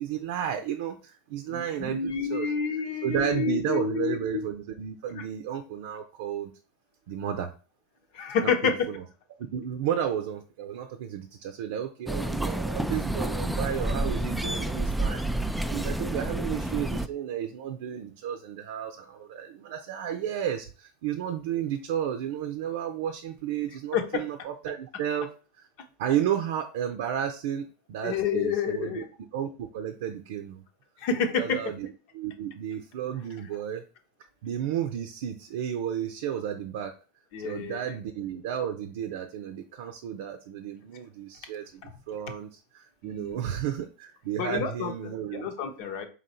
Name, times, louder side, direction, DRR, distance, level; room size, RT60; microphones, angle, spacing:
voice 1, 0.0-2.5 3.0-6.5 7.1-7.5 8.4-9.0 9.3-25.3 26.0-29.0 29.3-30.6 31.4-31.9 32.1-33.8 34.4-36.9 37.4-45.5, right 9 dB, 70° right, 6 dB, 0.6 m, -32 dB
voice 2, 1.5-4.2 5.1-5.2 8.1-8.7 23.9-24.0 28.0-29.1 31.0-31.6 37.3-37.8 43.0-43.4 44.4-44.9 45.3-46.1, left 6 dB, 60° left, 5 dB, 1.0 m, -28 dB
sound 1, 12.1-17.1, right 1 dB, ahead, 0.4 m, -29 dB
4.0 x 3.0 x 4.3 m, 0.35 s
hypercardioid pair, 105°, 0 cm